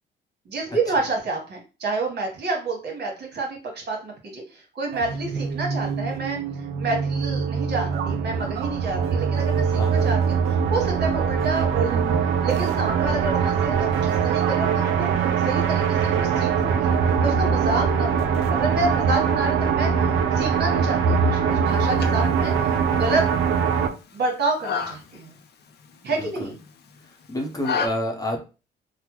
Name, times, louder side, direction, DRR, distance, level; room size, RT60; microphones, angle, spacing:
voice 1, 0.4-12.1 12.4-16.9 17.2-22.5 22.9-23.3 24.1-25.4 26.0-26.5, right 3 dB, 55° right, 0 dB, 1.3 m, -29 dB
sound 1, 4.9-23.9, right 6 dB, 90° right, 0.5 m, -22 dB
voice 2, 9.7-10.1 26.2-26.5 27.0-28.4, left 1 dB, 20° left, 1 dB, 0.8 m, -29 dB
sound 2, 21.7-27.9, left 6 dB, 55° left, 0.6 m, -34 dB
3.4 x 2.2 x 2.9 m, 0.31 s
cardioid pair, 90°, 20 cm